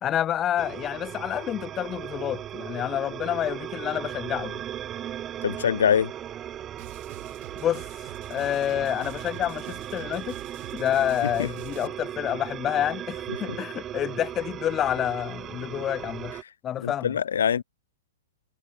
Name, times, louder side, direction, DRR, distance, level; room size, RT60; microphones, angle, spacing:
voice 1, 0.0-4.6 7.6-7.8 8.3-10.4 10.7-16.3 16.6-17.2, left 11 dB, 25° left, 0.3 m, -28 dB
sound 1, 0.6-16.4, right 11 dB, 25° right, 2.3 m, -37 dB
voice 2, 5.4-6.1 11.4-11.5 16.8-17.6, left 8 dB, 80° left, 0.6 m, -23 dB
sound 2, 6.8-11.9, right 23 dB, 45° right, 1.4 m, -45 dB
hypercardioid pair, 135°, 0 cm